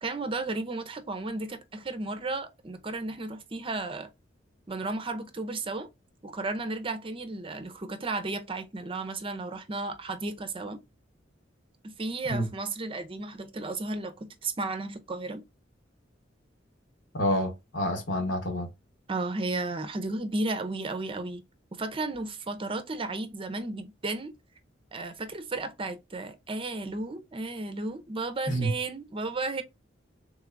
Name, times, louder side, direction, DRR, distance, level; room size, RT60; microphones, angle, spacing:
voice 1, 0.0-4.1 4.7-5.9 6.2-10.8 11.8-15.4 19.1-21.4 21.7-24.3 24.9-29.6, right 2 dB, 30° right, 0.6 m, -34 dB
voice 2, 17.1-18.7 28.5-28.7, equal, 70° left, 1.2 m, -28 dB
3.7 x 3.4 x 2.5 m
head